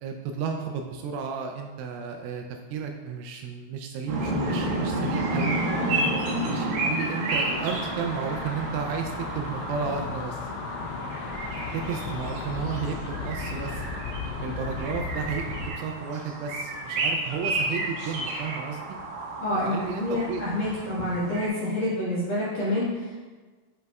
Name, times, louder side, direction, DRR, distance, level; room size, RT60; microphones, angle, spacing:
voice 1, 0.0-5.6 6.4-10.4 11.7-13.8 14.4-15.5 15.8-18.8 19.6-20.4, right 6 dB, 85° right, 3 dB, 2.9 m, -33 dB
sound 1, 4.1-21.5, right 1 dB, 70° right, 2.3 m, -31 dB
sound 2, 7.3-15.7, left 5 dB, 85° left, 2.6 m, -36 dB
voice 2, 19.4-23.2, left 1 dB, 55° left, -11 dB, 2.3 m, -28 dB
9.6 x 5.3 x 2.3 m, 1.3 s
omnidirectional pair, 5.8 m